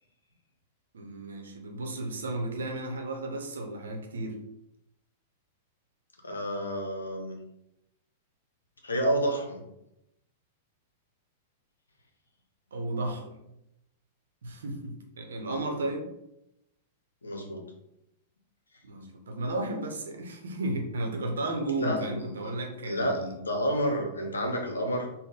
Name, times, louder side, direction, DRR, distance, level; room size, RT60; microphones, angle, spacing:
voice 1, 0.9-4.4 12.7-13.4 14.4-16.1 18.8-23.3, right 2 dB, 70° right, 3 dB, 0.7 m, -34 dB
voice 2, 6.2-7.4 8.8-9.6 17.2-17.6 21.8-22.3 22.8-25.1, equal, 80° left, 2 dB, 0.7 m, -29 dB
3.8 x 2.1 x 3.6 m, 0.84 s
figure-of-eight pair, 100°, 0 cm